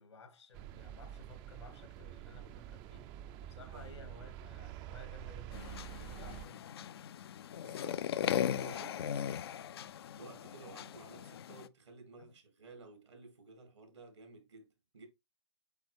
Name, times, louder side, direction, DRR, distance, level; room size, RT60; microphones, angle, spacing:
voice 1, 0.0-3.1 3.4-6.9 12.2-12.3, left 3 dB, 85° left, 2.0 m, -55 dB
sound 1, 0.5-6.5, right 13 dB, 30° right, 0.5 m, -47 dB
sound 2, 5.5-11.7, left 9 dB, 60° left, 0.4 m, -38 dB
voice 2, 7.6-9.4 10.2-15.1, right 3 dB, 80° right, 2.3 m, -54 dB
8.2 x 3.7 x 3.3 m
hypercardioid pair, 120°, 15 cm